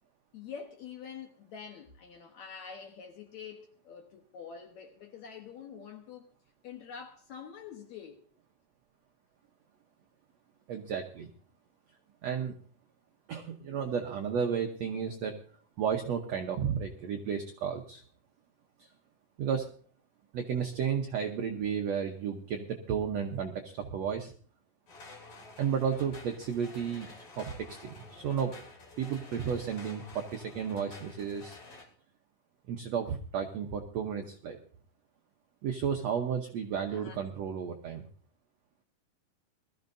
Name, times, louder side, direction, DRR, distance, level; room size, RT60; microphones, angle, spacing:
voice 1, 0.3-6.3 6.6-8.2 36.9-37.2, left 7 dB, 65° left, 2.0 m, -46 dB
voice 2, 10.7-11.3 12.2-12.6 13.3-15.4 15.8-18.0 19.4-19.7 20.3-24.3 25.6-28.6 29.0-31.6 32.7-34.6 35.6-38.1, right 7 dB, 75° right, 1.5 m, -33 dB
sound 1, 24.9-31.9, left 3 dB, 45° left, 3.2 m, -50 dB
21.5 x 14.0 x 2.6 m
omnidirectional pair, 4.4 m